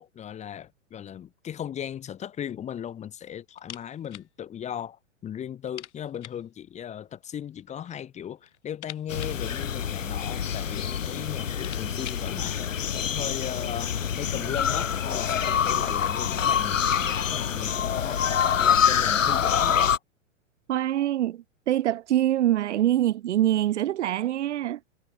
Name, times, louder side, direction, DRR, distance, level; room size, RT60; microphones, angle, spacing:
voice 1, 0.0-13.9 14.2-18.2 18.6-20.0, left 9 dB, 20° left, 1.0 m, -37 dB
sound 1, 3.6-4.3 4.6-4.7 5.0-5.1 5.6-6.5 7.4-8.0 8.4-10.3 11.0-11.1 11.4-12.3, left 11 dB, 65° left, 2.2 m, -46 dB
sound 2, 9.1-20.0, left 8 dB, 90° left, 0.7 m, -26 dB
voice 2, 20.7-24.8, right 12 dB, 65° right, 0.9 m, -24 dB
figure-of-eight pair, 105°, 38 cm